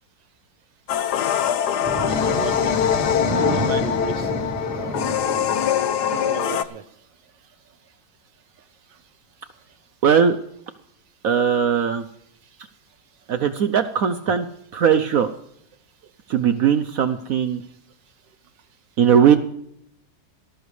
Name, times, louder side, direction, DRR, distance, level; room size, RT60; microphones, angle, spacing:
sound 1, 0.9-6.6, left 9 dB, 70° left, 1.2 m, -23 dB
sound 2, 1.8-6.4, right 2 dB, 20° right, 0.5 m, -30 dB
voice 1, 1.8-2.8 3.5-4.4 4.7-4.9 6.1-6.8, right 8 dB, 80° right, 8 dB, 1.5 m, -33 dB
voice 2, 10.0-10.4 11.2-12.0 13.3-14.5 14.7-15.3 16.3-17.6 19.0-19.4, right 8 dB, 65° right, 9 dB, 1.0 m, -18 dB
19.0 x 13.0 x 3.3 m, 0.72 s
omnidirectional pair, 2.0 m